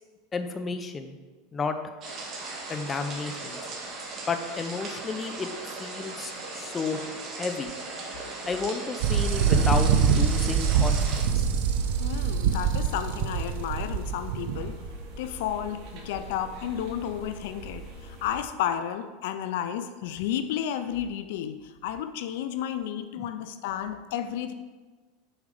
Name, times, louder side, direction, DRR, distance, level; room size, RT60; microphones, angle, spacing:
voice 1, 0.3-1.2 1.5-1.8 2.7-3.6 4.3-5.5 5.8-7.7 8.4-11.0 23.2-23.3, left 4 dB, 20° left, 7 dB, 0.7 m, -32 dB
sound 1, 2.0-11.2, right 3 dB, 35° right, 2.0 m, -38 dB
sound 2, 9.0-14.9, right 7 dB, 70° right, 0.8 m, -24 dB
sound 3, 11.0-18.4, right 1 dB, 50° right, 2.3 m, -44 dB
voice 2, 12.0-14.8 15.2-24.5, left 10 dB, 70° left, 10 dB, 0.5 m, -32 dB
7.1 x 4.9 x 6.6 m, 1.3 s
supercardioid pair, 135°, 0 cm